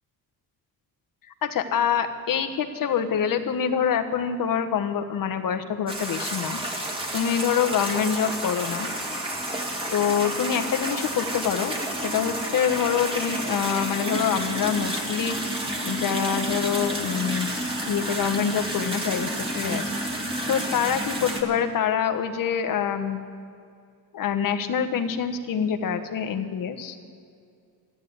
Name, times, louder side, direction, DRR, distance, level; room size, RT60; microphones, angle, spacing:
voice 1, 1.4-6.6 7.1-8.9 9.9-11.7 12.0-15.4 15.8-17.5 17.8-19.9 20.2-23.2 24.1-26.9, left 8 dB, 60° left, 7 dB, 1.2 m, -26 dB
sound 1, 5.9-21.4, right 1 dB, 15° right, 2.1 m, -30 dB
13.0 x 9.6 x 9.5 m, 2.4 s
cardioid pair, 135°, 38 cm